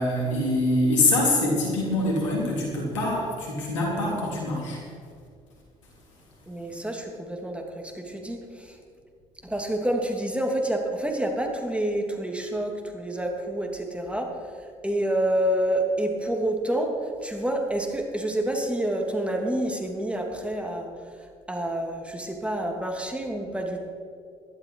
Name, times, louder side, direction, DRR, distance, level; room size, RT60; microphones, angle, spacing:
voice 1, 0.0-4.8, left 1 dB, 90° left, -3 dB, 3.8 m, -24 dB
voice 2, 6.5-8.8 9.4-14.3 14.8-16.9 17.2-20.9 21.5-23.8, right 1 dB, 10° right, 2 dB, 2.9 m, -28 dB
17.5 x 12.5 x 4.8 m, 2.3 s
hypercardioid pair, 55°, 15 cm